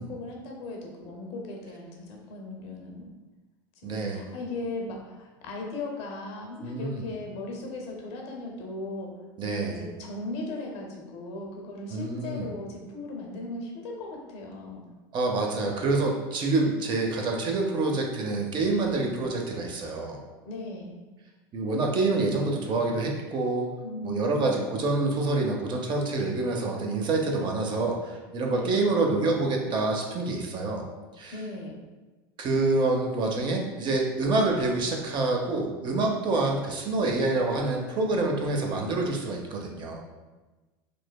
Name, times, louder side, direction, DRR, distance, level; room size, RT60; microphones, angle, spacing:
voice 1, 0.0-3.1 3.8-9.1 9.4-14.9 20.4-21.0 23.8-24.6 28.5-28.8 31.3-31.7, left 2 dB, 60° left, 1 dB, 0.6 m, -37 dB
voice 2, 3.8-4.2 6.6-7.0 9.4-9.8 11.9-12.5 15.1-20.2 21.5-23.7 24.0-30.8 31.2-31.3 32.4-40.0, right 2 dB, 40° right, 1 dB, 0.5 m, -27 dB
3.2 x 2.1 x 2.2 m, 1.2 s
hypercardioid pair, 95°, 12 cm